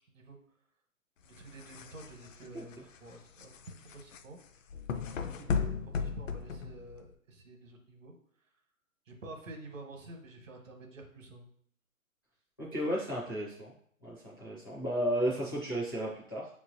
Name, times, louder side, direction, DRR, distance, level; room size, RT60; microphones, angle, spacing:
sound 1, 1.2-7.1, left 6 dB, 65° left, 0.5 m, -37 dB
voice 1, 1.2-3.5 3.8-4.4 5.2-8.1 9.1-11.5, right 2 dB, 65° right, 3 dB, 1.2 m, -49 dB
voice 2, 12.6-13.7 14.0-16.5, equal, 15° left, -8 dB, 0.4 m, -33 dB
6.1 x 3.0 x 2.6 m, 0.64 s
hypercardioid pair, 150°, 41 cm